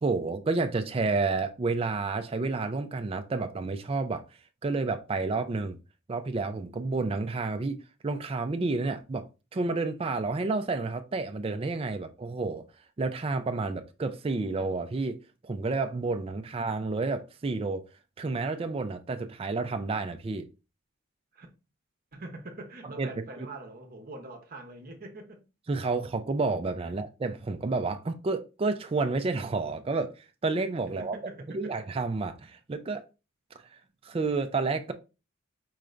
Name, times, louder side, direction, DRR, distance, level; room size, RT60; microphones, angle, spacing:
voice 1, 0.0-4.2 4.6-5.8 6.1-7.8 8.0-9.2 9.5-12.6 13.0-15.2 15.4-17.8 18.2-20.5 22.8-23.1 23.4-23.5 25.7-31.2 31.5-33.0 34.0-34.9, right 3 dB, 25° right, 0.3 m, -30 dB
voice 2, 22.1-25.4 31.0-31.8, right 2 dB, 40° right, 0.7 m, -44 dB
4.7 x 2.5 x 3.2 m
head